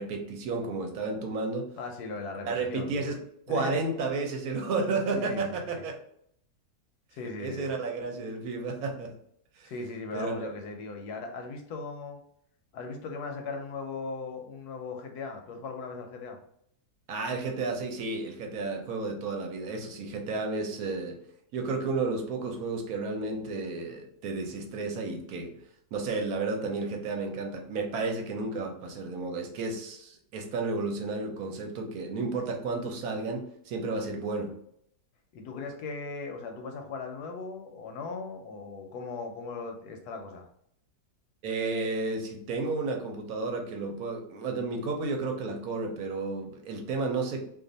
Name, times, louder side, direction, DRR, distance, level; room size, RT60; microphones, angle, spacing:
voice 1, 0.0-1.7 2.5-3.2 3.5-6.0 7.4-9.1 9.6-9.7 10.1-10.5 17.1-21.2 21.5-25.5 25.9-34.5 41.4-47.5, right 3 dB, 65° right, 2 dB, 1.0 m, -32 dB
voice 2, 1.8-3.1 3.5-3.8 5.1-5.7 7.1-7.7 9.6-12.2 12.7-16.4 35.3-40.5, left 4 dB, 75° left, 4 dB, 1.0 m, -38 dB
2.6 x 2.5 x 3.9 m, 0.69 s
omnidirectional pair, 1.8 m